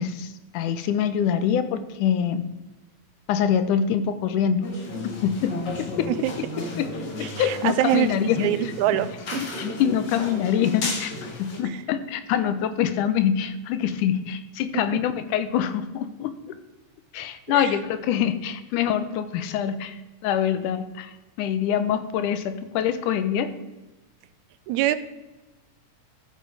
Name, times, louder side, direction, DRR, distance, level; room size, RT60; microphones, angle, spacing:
voice 1, 0.0-2.4 3.3-4.7 5.0-6.1 6.8-6.9 7.2-8.5 9.4-16.5 17.1-23.5, left 9 dB, 90° left, 11 dB, 2.3 m, -25 dB
sound 1, 4.6-11.6, left 2 dB, 45° left, 1.8 m, -33 dB
voice 2, 7.2-9.4 11.6-11.8 17.5-17.7 24.7-25.0, right 14 dB, 80° right, 13 dB, 1.9 m, -25 dB
14.5 x 6.5 x 4.8 m, 1.1 s
omnidirectional pair, 3.6 m